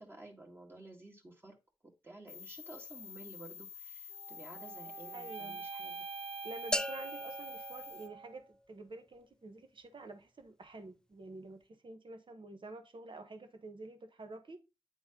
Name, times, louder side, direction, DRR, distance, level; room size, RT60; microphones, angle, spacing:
voice 1, 0.0-1.6 1.8-6.0, right 2 dB, 25° right, 2.0 m, -53 dB
sound 1, 2.3-8.1, left 7 dB, 90° left, 0.7 m, -49 dB
sound 2, 4.1-8.4, right 6 dB, 80° right, 0.4 m, -46 dB
voice 2, 5.1-5.7 6.4-14.6, right 2 dB, 55° right, 1.2 m, -49 dB
sound 3, 6.7-8.7, left 1 dB, 5° left, 0.3 m, -39 dB
9.1 x 3.9 x 3.8 m
cardioid pair, 70°, 10 cm